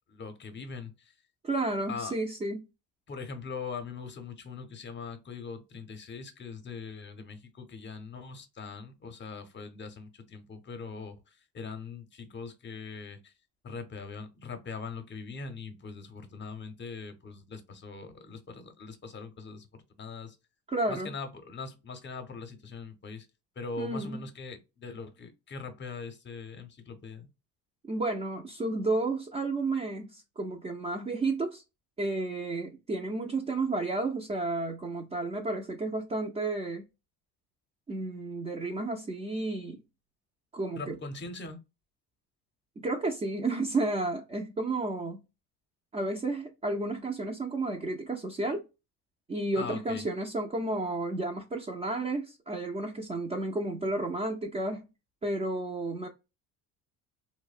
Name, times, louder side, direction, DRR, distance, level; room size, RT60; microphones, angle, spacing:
voice 1, 0.1-1.1 1.9-2.1 3.1-13.3 13.6-20.4 20.9-23.3 23.6-27.3 40.8-41.6 49.6-50.0, left 4 dB, 30° left, 0.6 m, -41 dB
voice 2, 1.4-2.7 20.7-21.1 23.8-24.2 27.9-31.6 32.0-36.8 37.9-39.8 40.5-40.9 42.8-45.2 45.9-48.6 49.3-54.9 55.2-56.1, right 2 dB, 20° right, 0.3 m, -32 dB
2.6 x 2.1 x 2.3 m
cardioid pair, 100°, 40 cm